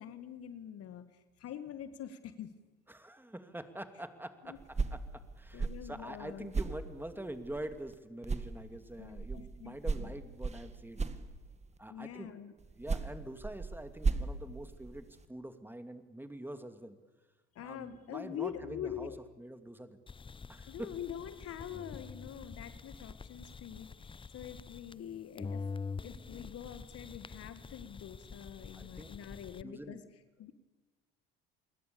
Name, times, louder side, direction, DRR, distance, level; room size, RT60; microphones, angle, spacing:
voice 1, 0.0-2.5 4.4-4.6 5.5-6.5 9.0-10.1 11.9-12.5 17.6-19.2 20.7-25.6 26.0-30.0 30.4-30.5, left 9 dB, 55° left, 11 dB, 1.9 m, -45 dB
voice 2, 2.9-4.6 4.9-11.0 11.8-12.3 12.8-17.0 17.6-19.1 19.4-20.0 20.5-20.9 28.7-29.1 29.6-30.0, right 1 dB, 5° right, 8 dB, 2.6 m, -45 dB
sound 1, 4.5-7.9 8.2-11.8 12.6-15.3, right 4 dB, 20° right, 2.0 m, -37 dB
sound 2, 20.1-25.1 25.4-29.6, left 5 dB, 15° left, 0.7 m, -46 dB
28.5 x 21.5 x 7.1 m, 1.2 s
hypercardioid pair, 65°, 29 cm